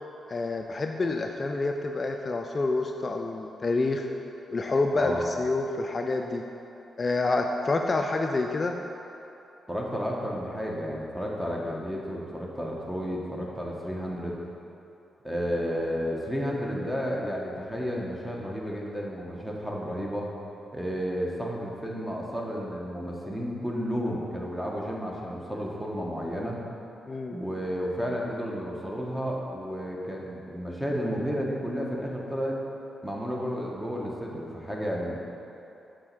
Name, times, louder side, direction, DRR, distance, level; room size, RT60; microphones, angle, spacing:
voice 1, 0.3-4.1 4.5-6.4 7.0-8.8 27.1-27.4, left 3 dB, 40° left, 3 dB, 0.3 m, -28 dB
voice 2, 4.9-5.3 9.7-14.4 15.2-20.3 20.7-26.6 27.3-32.6 33.0-35.2, equal, 10° right, -2 dB, 1.1 m, -32 dB
6.3 x 4.1 x 4.6 m, 2.8 s
cardioid pair, 65°, 0 cm